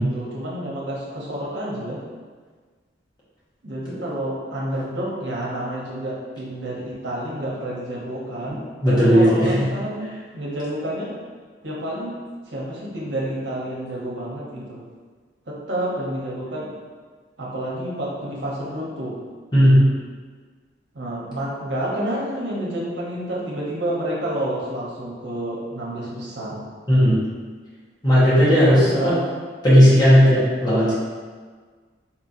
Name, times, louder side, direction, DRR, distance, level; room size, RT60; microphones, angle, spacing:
voice 1, 0.0-2.0 3.6-10.1 10.3-11.1 11.6-12.2 12.5-14.8 15.5-16.7 17.4-19.1 20.9-26.6 28.5-29.2, right 1 dB, 70° right, -5 dB, 0.9 m, -29 dB
voice 2, 8.8-9.7 19.5-19.8 26.9-27.2 28.0-29.2 29.6-30.9, equal, 25° left, -10 dB, 1.1 m, -15 dB
4.2 x 2.9 x 2.6 m, 1.5 s
head